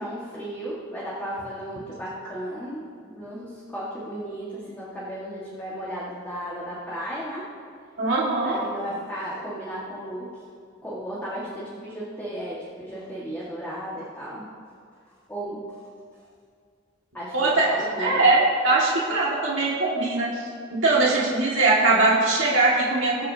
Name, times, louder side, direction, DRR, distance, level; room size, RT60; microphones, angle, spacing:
voice 1, 0.0-7.4 8.4-10.3 10.8-14.5 15.3-15.6 17.1-18.3, equal, 10° left, -8 dB, 1.7 m, -34 dB
voice 2, 8.0-8.6 17.3-20.3 20.7-23.3, right 2 dB, 75° right, -5 dB, 2.0 m, -21 dB
21.5 x 8.1 x 2.8 m, 2.2 s
head